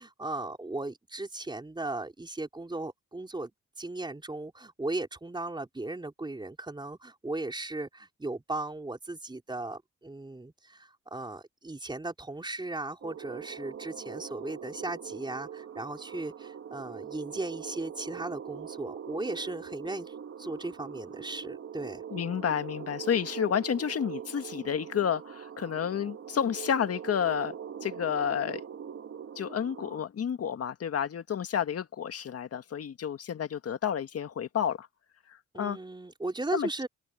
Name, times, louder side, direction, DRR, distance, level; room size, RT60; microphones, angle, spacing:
voice 1, 0.0-3.5 3.8-22.0 35.5-36.9, right 2 dB, 15° right, 4.7 m, -37 dB
sound 1, 13.0-30.0, right 8 dB, 50° right, 1.9 m, -42 dB
voice 2, 22.1-27.6 27.8-28.6 29.4-34.9 35.6-35.8 36.5-36.7, left 8 dB, 50° left, 1.8 m, -30 dB
open air
cardioid pair, 90°, 30 cm